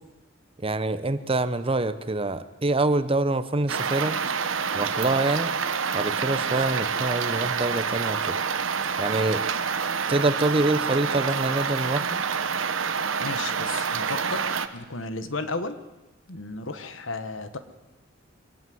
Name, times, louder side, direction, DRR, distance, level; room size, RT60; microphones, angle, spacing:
voice 1, 0.6-4.2 4.7-5.5 5.9-8.4 9.0-9.4 10.1-12.2, right 2 dB, 30° right, 12 dB, 0.9 m, -25 dB
sound 1, 3.7-14.7, right 6 dB, 85° right, 1.1 m, -27 dB
voice 2, 13.2-14.4 14.7-15.8 16.3-17.6, left 3 dB, 75° left, 10 dB, 1.5 m, -33 dB
24.0 x 17.5 x 7.9 m, 1.1 s
head